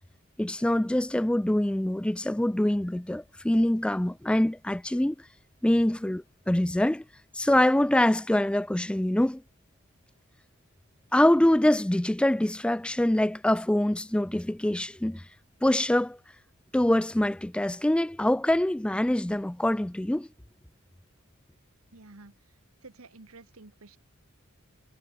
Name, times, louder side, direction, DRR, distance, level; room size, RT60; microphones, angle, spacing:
voice 1, 0.4-5.2 5.6-7.0 7.3-9.4 11.1-15.3 15.6-16.2 16.7-20.3, left 1 dB, 5° left, 0.3 m, -24 dB
voice 2, 21.9-22.3 22.8-24.0, right 3 dB, 75° right, 1.6 m, -50 dB
head